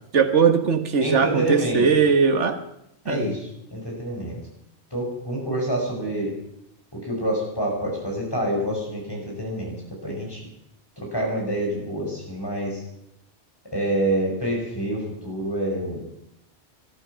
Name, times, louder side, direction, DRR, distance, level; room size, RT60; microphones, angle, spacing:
voice 1, 0.1-2.6 3.1-3.3, right 6 dB, 85° right, 8 dB, 1.6 m, -19 dB
voice 2, 1.0-1.9 3.0-4.4 4.9-6.3 7.0-9.7 10.0-10.4 11.1-12.8 13.7-16.0, right 1 dB, 20° left, -1 dB, 5.5 m, -27 dB
20.0 x 12.5 x 5.8 m, 0.80 s
omnidirectional pair, 1.2 m